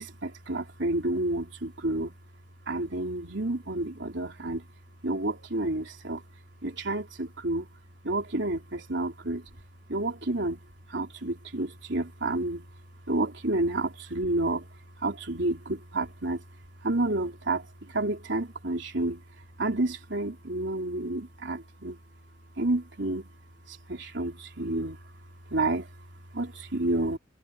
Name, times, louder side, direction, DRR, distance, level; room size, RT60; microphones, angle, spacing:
voice 1, 0.0-2.1 2.7-4.7 5.0-6.2 6.6-7.7 8.0-9.5 9.9-10.6 10.9-12.7 13.1-14.7 15.0-16.4 16.8-19.2 19.6-22.0 22.6-23.3 23.7-25.0 25.5-25.9 26.3-27.2, right 2 dB, 65° right, 3.6 m, -30 dB
head